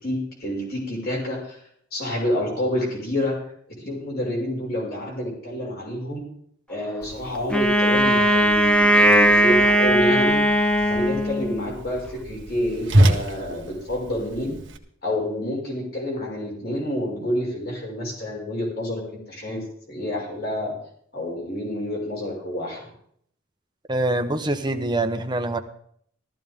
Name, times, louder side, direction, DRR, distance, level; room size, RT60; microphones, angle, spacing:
voice 1, 0.0-1.6 1.9-6.2 6.7-14.5 15.0-20.7 21.1-22.8, left 1 dB, 55° left, -3 dB, 5.7 m, -28 dB
Whoosh swoosh swish, 7.0-14.8, right 1 dB, 70° right, 1.7 m, -27 dB
Wind instrument woodwind instrument, 7.5-11.7, right 1 dB, 5° left, 0.9 m, -18 dB
voice 2, 23.9-25.6, right 2 dB, 25° right, 6 dB, 1.1 m, -24 dB
15.0 x 14.0 x 3.7 m, 0.64 s
head